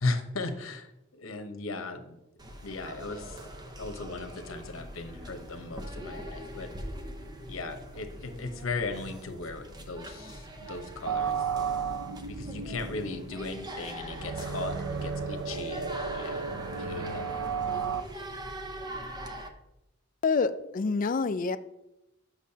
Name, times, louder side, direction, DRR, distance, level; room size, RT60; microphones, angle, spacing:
voice 1, 0.0-2.2 2.6-3.4 3.8-6.7 7.5-11.4 12.3-16.4 16.8-17.4, left 3 dB, 90° left, 7 dB, 0.9 m, -37 dB
sound 1, 2.4-19.5, right 1 dB, 20° right, 0.6 m, -42 dB
sound 2, 11.1-18.0, right 6 dB, 90° right, 0.5 m, -33 dB
voice 2, 20.2-21.6, left 4 dB, 40° left, 12 dB, 0.3 m, -27 dB
8.3 x 6.0 x 2.8 m, 0.89 s
head